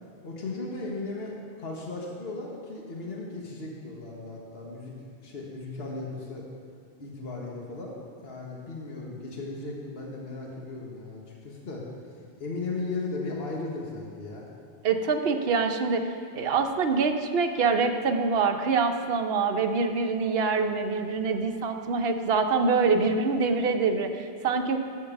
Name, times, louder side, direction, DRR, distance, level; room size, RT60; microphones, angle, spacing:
voice 1, 0.2-4.9 5.2-6.5 7.0-7.9 8.2-11.9 12.4-14.4, left 3 dB, 65° left, -2 dB, 1.5 m, -36 dB
voice 2, 14.8-24.8, right 4 dB, 65° right, 5 dB, 0.9 m, -25 dB
12.0 x 4.6 x 7.1 m, 2.2 s
omnidirectional pair, 1.1 m